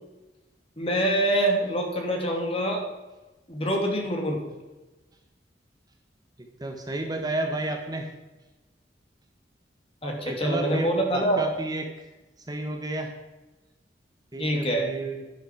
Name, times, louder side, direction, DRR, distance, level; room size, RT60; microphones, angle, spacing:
voice 1, 0.8-2.9 3.5-4.5 10.0-11.5 14.4-14.9, right 1 dB, 35° left, 1 dB, 2.7 m, -25 dB
voice 2, 6.4-8.1 10.0-12.1 12.5-13.1 14.3-15.2, right 2 dB, 25° right, 4 dB, 1.2 m, -32 dB
11.5 x 11.0 x 4.6 m, 1.1 s
head